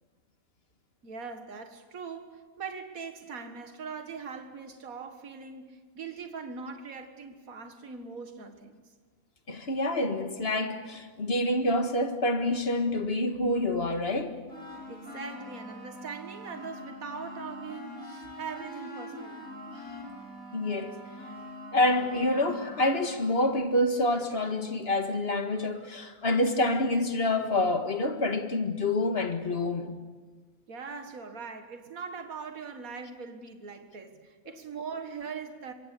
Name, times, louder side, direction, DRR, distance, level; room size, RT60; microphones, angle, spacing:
voice 1, 1.0-8.8 14.9-19.5 30.7-35.7, right 5 dB, 75° right, 2.2 m, -41 dB
voice 2, 9.5-14.4 20.5-21.0 21.7-29.9, left 1 dB, 45° left, 2.0 m, -27 dB
sound 1, 14.5-23.3, left 1 dB, 70° left, 6.6 m, -43 dB
27.0 x 23.5 x 8.5 m
omnidirectional pair, 1.5 m